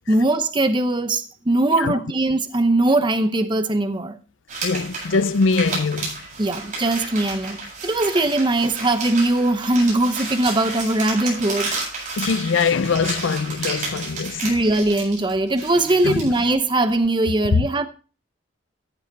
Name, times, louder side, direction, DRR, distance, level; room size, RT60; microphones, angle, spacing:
voice 1, 0.1-4.2 6.4-11.7 14.4-17.9, right 2 dB, 25° right, 0.8 m, -20 dB
sound 1, 4.5-16.5, right 3 dB, 45° right, 7.9 m, -32 dB
voice 2, 4.6-6.2 12.2-14.4 16.0-16.2, left 4 dB, 80° left, 0.5 m, -22 dB
14.5 x 7.8 x 4.2 m
head